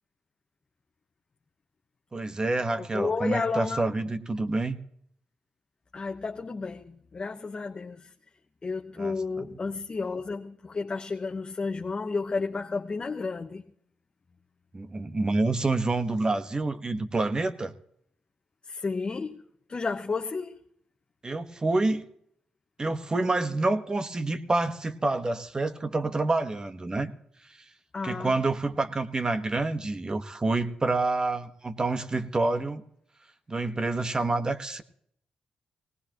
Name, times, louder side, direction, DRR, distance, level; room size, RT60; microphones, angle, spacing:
voice 1, 2.1-4.8 9.0-9.6 14.7-17.7 21.2-22.0 22.8-27.1 28.0-32.8 33.5-34.8, right 2 dB, 30° right, 1.4 m, -28 dB
voice 2, 2.8-3.8 5.9-8.1 8.6-13.6 18.7-19.4 19.7-20.5 27.9-28.3, left 4 dB, 40° left, 1.1 m, -32 dB
18.5 x 18.5 x 3.0 m
supercardioid pair, 60°, 3 cm